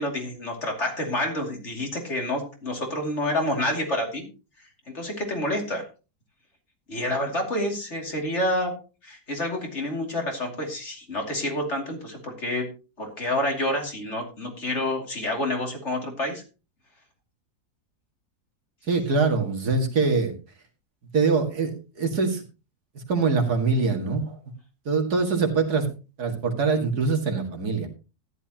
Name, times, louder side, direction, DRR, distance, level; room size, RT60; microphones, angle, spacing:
voice 1, 0.0-4.3 4.6-5.8 6.9-12.7 13.0-16.4, left 1 dB, 45° left, 1 dB, 3.0 m, -28 dB
voice 2, 18.9-20.3 21.1-22.4 22.9-24.4 24.9-25.9 26.2-27.9, right 4 dB, 75° right, 3 dB, 2.6 m, -23 dB
14.0 x 11.0 x 2.9 m, 0.31 s
omnidirectional pair, 1.7 m